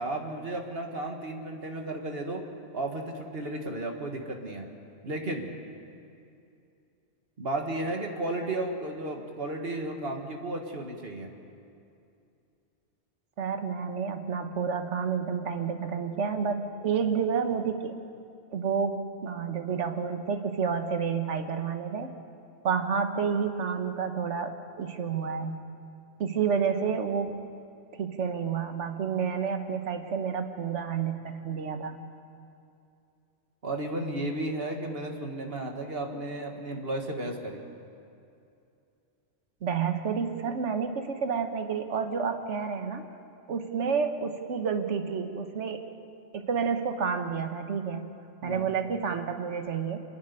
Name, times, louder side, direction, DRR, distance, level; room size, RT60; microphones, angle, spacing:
voice 1, 0.0-2.4 2.7-4.7 5.0-5.5 7.4-11.3 33.6-37.6 48.4-48.7, right 1 dB, 55° right, 3 dB, 2.0 m, -33 dB
voice 2, 13.4-18.0 18.5-22.1 22.6-25.6 26.2-27.4 28.0-32.0 39.6-43.1 43.5-45.8 46.3-48.1 48.4-50.0, right 6 dB, 75° right, 7 dB, 1.5 m, -30 dB
26.0 x 11.0 x 9.8 m, 2.6 s
omnidirectional pair, 1.2 m